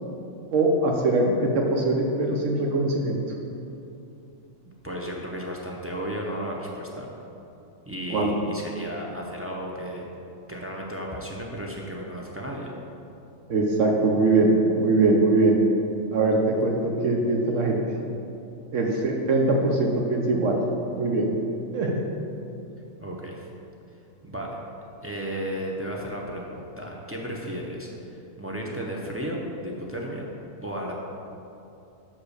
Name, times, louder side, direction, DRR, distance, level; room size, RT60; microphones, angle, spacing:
voice 1, 0.5-3.2 8.1-8.4 13.5-15.6 16.1-17.8 18.7-20.6 20.9-21.3 21.7-22.0, right 2 dB, 70° right, 0 dB, 1.1 m, -22 dB
voice 2, 4.8-7.1 7.9-10.1 10.5-12.7 23.0-23.4 24.2-24.6 25.0-30.3 30.6-31.0, equal, 20° right, -3 dB, 0.4 m, -34 dB
5.5 x 5.0 x 6.6 m, 2.7 s
omnidirectional pair, 1.4 m